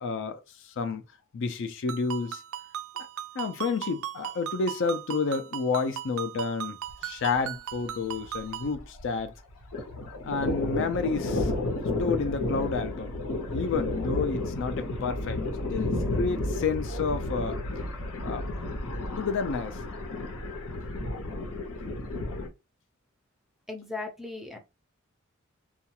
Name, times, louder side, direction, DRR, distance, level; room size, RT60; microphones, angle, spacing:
voice 1, 0.0-1.0 1.3-2.4 2.9-3.1 3.3-9.3 10.2-11.5 12.0-13.2 13.5-15.4 15.7-17.6 18.2-18.5 19.2-19.8, left 4 dB, 60° left, 0.4 m, -30 dB
Ringtone, 1.9-8.7, right 11 dB, 75° right, 0.3 m, -38 dB
Thunder, 6.9-7.0 7.3-7.4 7.7-9.2 9.5-22.5, left 2 dB, 90° left, 0.8 m, -32 dB
voice 2, 23.7-24.6, left 3 dB, ahead, 0.5 m, -37 dB
2.4 x 2.3 x 2.8 m
head